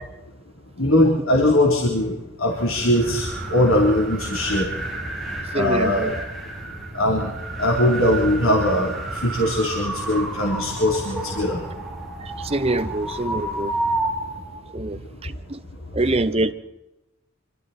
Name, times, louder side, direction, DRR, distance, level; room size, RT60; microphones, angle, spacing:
voice 1, 0.8-4.7 5.5-6.1 6.9-11.6 15.3-15.4, left 1 dB, 85° left, 3.8 m, -21 dB
sound 1, 2.5-14.6, right 2 dB, ahead, 7.6 m, -31 dB
voice 2, 5.5-6.1 12.2-13.7 14.7-15.6 15.9-16.5, right 2 dB, 30° right, 0.9 m, -25 dB
26.5 x 25.0 x 4.4 m
head